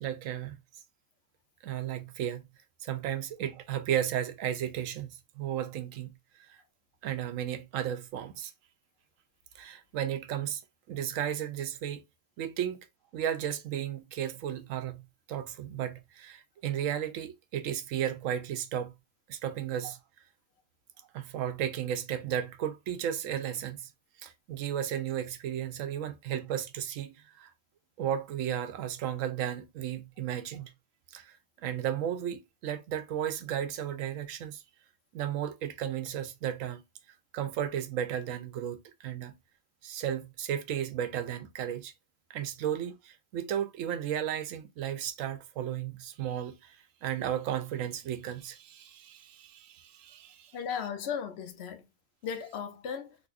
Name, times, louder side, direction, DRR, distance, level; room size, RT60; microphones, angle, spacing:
voice 1, 0.0-0.6 1.6-2.4 2.8-6.1 6.5-6.6 7.0-8.5 9.5-10.6 10.9-12.0 12.4-12.9 13.1-18.9 19.3-20.0 21.1-23.9 24.2-27.5 28.0-30.7 31.1-34.6 35.1-36.8 37.3-39.3 39.8-41.9 42.3-50.5, right 10 dB, 85° right, 1.0 m, -34 dB
voice 2, 50.5-51.8 52.2-53.2, left 7 dB, 65° left, 0.8 m, -36 dB
4.0 x 2.6 x 2.4 m
omnidirectional pair, 1.3 m